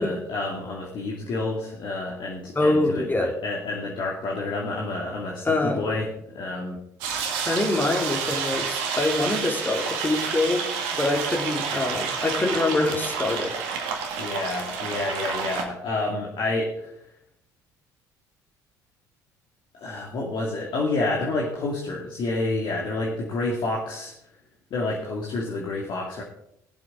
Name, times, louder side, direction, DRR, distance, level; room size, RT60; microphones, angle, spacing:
voice 1, 0.0-6.8 7.3-7.5 14.2-16.9 19.7-24.1 24.7-26.2, left 2 dB, 55° left, -4 dB, 2.6 m, -29 dB
voice 2, 2.5-3.3 5.4-5.9 7.5-10.7 10.9-13.6, left 2 dB, 20° left, 2 dB, 3.0 m, -24 dB
sound 1, 7.0-15.6, right 6 dB, 70° right, 1.7 m, -29 dB
19.0 x 7.6 x 3.9 m, 0.74 s
hypercardioid pair, 55°, 10 cm